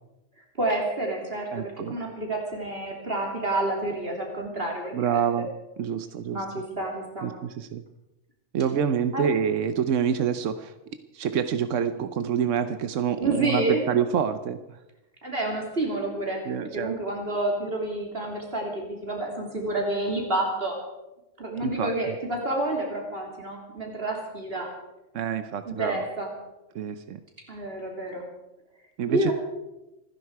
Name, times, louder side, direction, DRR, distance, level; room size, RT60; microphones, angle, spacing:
voice 1, 0.4-5.2 6.3-7.3 9.1-9.3 13.2-13.9 15.2-16.4 16.7-20.8 21.4-24.7 25.6-26.3 27.5-28.2 29.1-29.3, right 2 dB, 50° right, 0 dB, 3.2 m, -29 dB
voice 2, 1.5-1.9 4.9-5.5 5.8-6.4 7.2-7.8 8.5-10.7 11.1-14.6 16.5-16.9 21.6-21.9 25.1-26.0 26.7-27.2 29.0-29.3, right 8 dB, 90° right, 10 dB, 1.1 m, -27 dB
28.0 x 10.5 x 4.7 m, 0.98 s
omnidirectional pair, 1.2 m